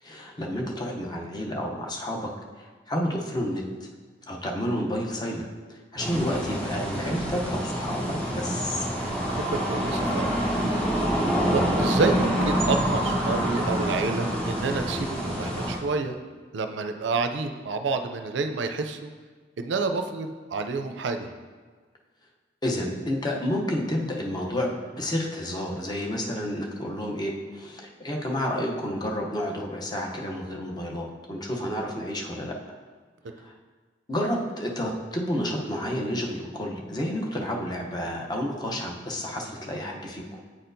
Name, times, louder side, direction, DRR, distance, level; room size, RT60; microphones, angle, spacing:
voice 1, 0.0-2.3 2.6-3.6 4.3-8.9 22.6-32.5 33.4-33.5 34.1-40.4, equal, 25° left, 0 dB, 0.7 m, -30 dB
sound 1, 6.0-15.7, equal, 5° left, 1.5 m, -26 dB
voice 2, 9.5-10.3 11.5-16.2 16.5-19.1 19.6-21.3, right 4 dB, 70° right, 6 dB, 0.4 m, -29 dB
8.6 x 4.3 x 2.6 m, 1.5 s
head